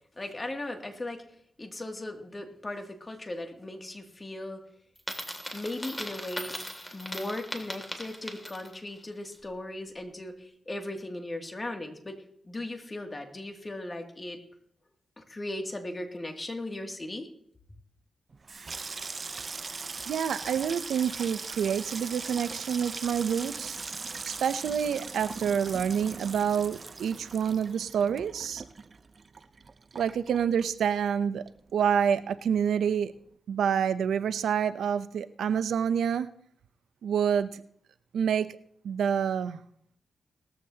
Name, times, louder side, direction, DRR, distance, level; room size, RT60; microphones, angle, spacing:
voice 1, 0.2-1.2 1.6-4.6 5.5-6.6 6.9-14.4 15.2-17.3, left 1 dB, 30° left, 3 dB, 2.5 m, -37 dB
Coin (dropping), 5.0-8.9, equal, 10° left, 2.6 m, -39 dB
Water tap faucet / Sink (filling or washing), 18.3-31.2 31.5-32.1 32.4-32.7, right 4 dB, 45° right, 0.6 m, -40 dB
voice 2, 20.1-23.8 24.2-28.6 29.9-31.4 31.7-33.1 33.5-36.3 37.0-37.6 38.1-38.6 38.8-39.6, right 8 dB, 85° right, 13 dB, 0.6 m, -27 dB
19.0 x 14.0 x 2.9 m, 0.65 s
cardioid pair, 70°, 0 cm